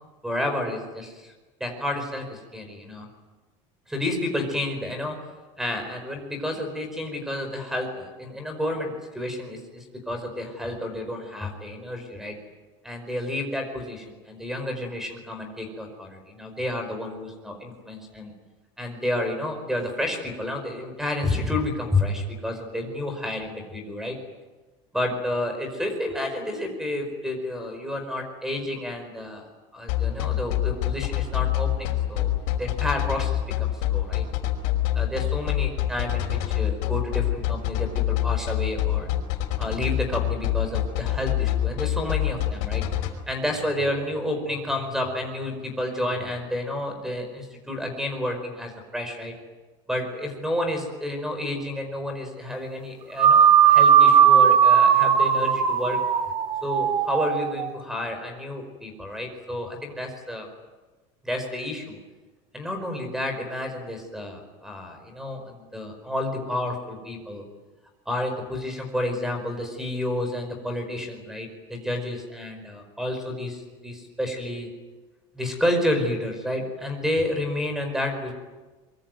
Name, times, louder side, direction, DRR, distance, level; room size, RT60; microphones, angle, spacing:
voice 1, 0.2-1.3 1.6-3.1 3.9-5.1 5.6-12.3 12.8-18.3 18.8-24.2 24.9-29.5 29.7-34.2 34.9-37.9 38.2-39.1 39.6-42.8 43.3-49.3 49.9-56.0 56.6-60.5 61.2-62.0 62.5-67.4 68.0-74.7 75.3-78.3, left 1 dB, 5° right, 6 dB, 5.1 m, -30 dB
sound 1, 29.9-43.1, left 14 dB, 65° left, 5.3 m, -25 dB
sound 2, 53.2-57.7, right 8 dB, 35° right, 2.3 m, -17 dB
24.5 x 23.5 x 9.4 m, 1.2 s
cardioid pair, 175°, 15 cm